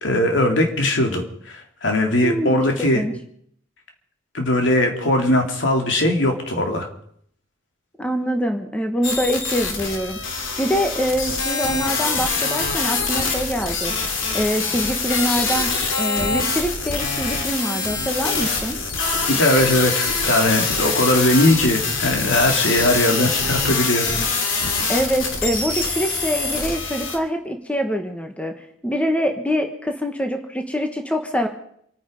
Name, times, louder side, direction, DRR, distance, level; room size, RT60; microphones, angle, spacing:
voice 1, 0.0-3.0 4.3-6.9 19.3-24.1, left 1 dB, 70° left, 3 dB, 3.0 m, -20 dB
voice 2, 2.2-3.1 8.0-10.2 10.6-13.9 14.3-18.8 24.9-28.5 28.8-31.5, equal, 5° left, 5 dB, 1.3 m, -24 dB
sound 1, 9.0-27.2, left 4 dB, 85° left, 2.9 m, -24 dB
27.5 x 9.8 x 5.2 m, 0.67 s
head